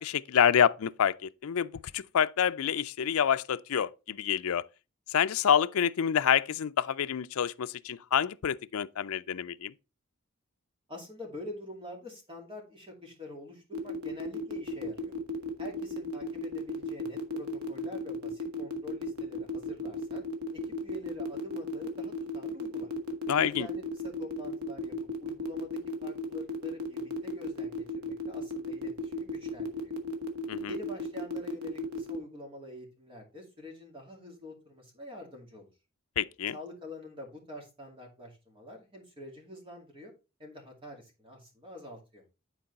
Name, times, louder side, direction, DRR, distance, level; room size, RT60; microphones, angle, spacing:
voice 1, 0.0-1.7 1.9-4.6 5.1-9.7 23.3-23.7 30.5-30.7 36.2-36.6, left 8 dB, 80° left, 0.4 m, -27 dB
voice 2, 10.9-15.1 15.6-20.2 20.5-22.9 23.5-24.9 25.2-30.0 30.7-35.7 36.5-40.1 40.4-42.2, left 1 dB, 25° right, 2.5 m, -46 dB
sound 1, 13.7-32.2, left 3 dB, 90° right, 1.5 m, -35 dB
10.5 x 4.6 x 4.1 m
head